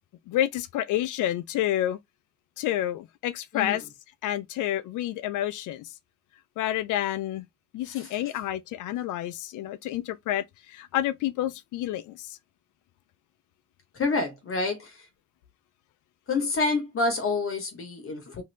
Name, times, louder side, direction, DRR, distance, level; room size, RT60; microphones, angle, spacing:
voice 1, 0.3-2.0 2.6-3.8 4.2-5.9 6.6-7.4 7.7-12.4, left 13 dB, 85° left, 0.5 m, -29 dB
voice 2, 3.5-3.8 7.9-8.2 13.9-15.1 16.3-18.4, left 3 dB, 45° left, 0.9 m, -28 dB
2.7 x 2.5 x 3.2 m
cardioid pair, 90°, 30 cm